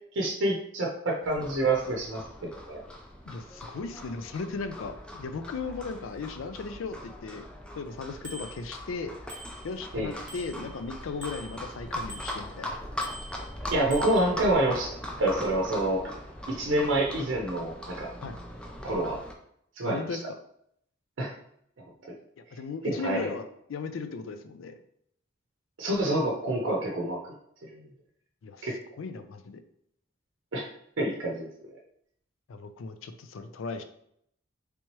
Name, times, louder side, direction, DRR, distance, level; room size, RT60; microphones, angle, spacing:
voice 1, 0.1-2.2 2.7-2.8 9.9-10.1 13.7-14.9 15.2-16.1 16.5-18.1 18.8-19.2 19.8-20.0 21.2-21.3 22.8-23.3 25.8-27.3 27.7-27.9 28.6-28.8 30.5-30.7 31.0-31.5, right 1 dB, 75° right, -1 dB, 0.6 m, -27 dB
Livestock farm animals working animals, 1.2-19.3, left 1 dB, 5° left, 0.4 m, -40 dB
voice 2, 3.3-7.5 7.7-9.1 9.6-12.8 18.2-18.4 19.8-20.4 22.5-24.8 28.4-28.7 29.0-29.6 32.5-33.8, left 4 dB, 90° left, 8 dB, 0.4 m, -37 dB
Bicycle bell, 8.2-8.5 9.3-9.9 10.3-12.5 13.0-14.3, right 1 dB, 40° right, 0.7 m, -45 dB
3.4 x 2.9 x 3.0 m, 0.70 s
head